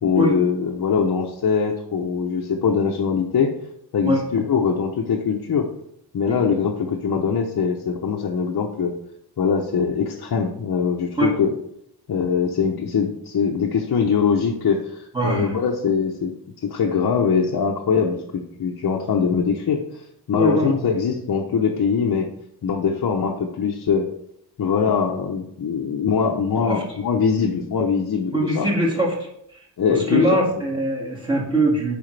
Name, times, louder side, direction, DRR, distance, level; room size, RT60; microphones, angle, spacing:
voice 1, 0.0-3.5 3.9-5.7 6.1-8.9 9.4-11.5 12.1-19.8 20.3-22.3 22.6-24.1 24.6-28.7 29.8-30.6, left 6 dB, 55° left, -1 dB, 0.8 m, -22 dB
voice 2, 15.1-15.5 20.3-20.7 26.7-26.8 28.3-29.2 29.9-31.9, right 1 dB, 10° right, -4 dB, 2.0 m, -21 dB
8.8 x 5.1 x 3.3 m, 0.73 s
wide cardioid pair, 155°, 41 cm